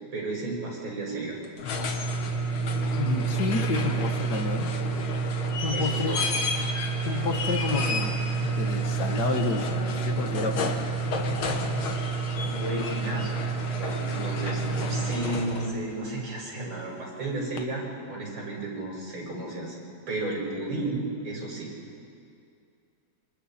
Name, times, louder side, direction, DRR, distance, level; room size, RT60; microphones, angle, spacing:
voice 1, 0.1-1.4 5.7-6.2 12.5-19.8 20.1-21.7, right 2 dB, 70° right, -3 dB, 6.4 m, -33 dB
sound 1, 1.4-15.8 17.6-17.7, right 2 dB, 85° left, 2.3 m, -28 dB
voice 2, 3.0-4.7 5.6-6.2 7.0-8.2 8.6-10.9, left 4 dB, 60° left, 4 dB, 2.0 m, -30 dB
28.0 x 26.5 x 4.3 m, 2.4 s
omnidirectional pair, 2.2 m